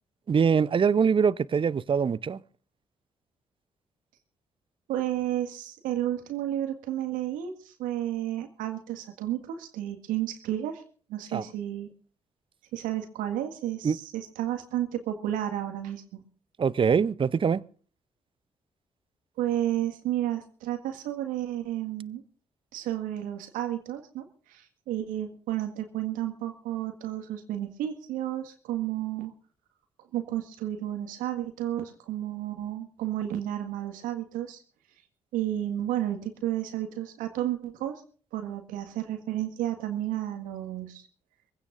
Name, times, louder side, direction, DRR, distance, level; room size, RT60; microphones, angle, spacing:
voice 1, 0.3-2.4 11.3-11.4 13.8-14.0 16.6-17.6, right 6 dB, 35° right, 0.7 m, -23 dB
voice 2, 4.9-10.8 11.1-11.9 12.7-16.2 19.4-22.2 22.7-29.3 30.1-34.6 35.3-38.0 38.3-41.1, right 12 dB, 70° right, 1.8 m, -32 dB
23.5 x 16.0 x 2.6 m
figure-of-eight pair, 40°, 14 cm